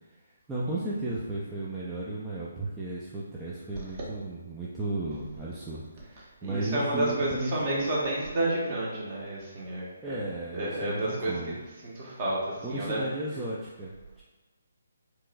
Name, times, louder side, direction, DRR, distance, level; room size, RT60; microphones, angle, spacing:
voice 1, 0.5-7.9 10.0-11.6 12.6-14.2, right 2 dB, 10° right, -8 dB, 0.5 m, -34 dB
voice 2, 6.4-10.2 10.5-11.5 11.8-13.4, right 1 dB, 35° right, -5 dB, 1.3 m, -31 dB
4.5 x 3.0 x 2.5 m, 1.2 s
figure-of-eight pair, 140°, 0 cm